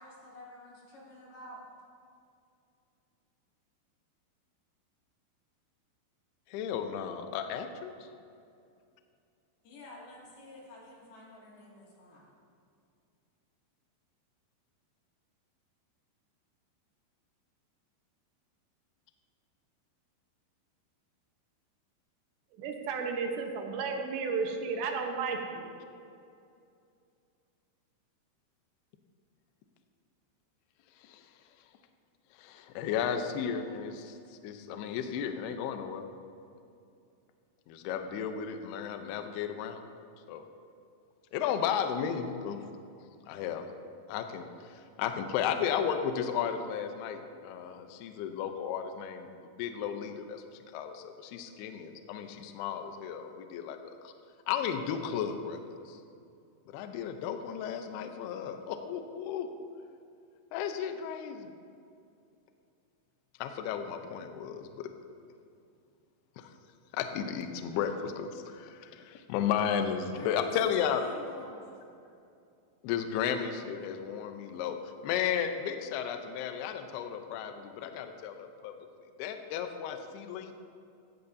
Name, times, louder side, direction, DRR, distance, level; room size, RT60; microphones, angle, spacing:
voice 1, 0.0-1.7 9.6-12.3 70.2-71.8, left 1 dB, 55° left, -5 dB, 3.9 m, -48 dB
voice 2, 6.5-8.1 31.0-31.3 32.4-34.2 34.4-36.1 37.7-39.8 40.3-40.4 41.3-42.6 43.3-43.7 44.1-49.3 49.6-54.1 54.5-56.0 56.7-59.5 60.5-61.5 63.4-64.9 66.4-66.5 66.9-71.0 72.8-78.7 79.2-80.5, left 8 dB, 90° left, 6 dB, 2.2 m, -34 dB
voice 3, 22.6-25.7, right 4 dB, 75° right, 3 dB, 3.0 m, -33 dB
16.0 x 15.0 x 2.7 m, 2.5 s
omnidirectional pair, 5.7 m